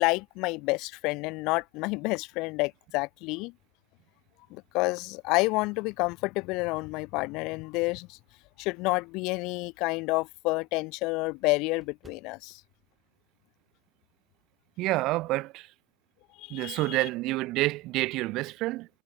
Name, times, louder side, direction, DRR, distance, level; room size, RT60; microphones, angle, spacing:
voice 1, 0.0-3.5 4.5-8.2 8.6-12.6 16.4-17.0, left 24 dB, 35° left, 0.4 m, -29 dB
sound 1, 1.5-2.8 3.3-3.4 4.9-5.4 5.9-8.6 9.0-9.1 9.5-9.6 9.9-10.0 10.2-14.0 14.3-14.5 14.8-15.4, right 4 dB, 10° right, 4.6 m, -66 dB
voice 2, 14.8-15.7 16.5-18.9, right 19 dB, 35° right, 0.6 m, -28 dB
supercardioid pair, 160°, 0 cm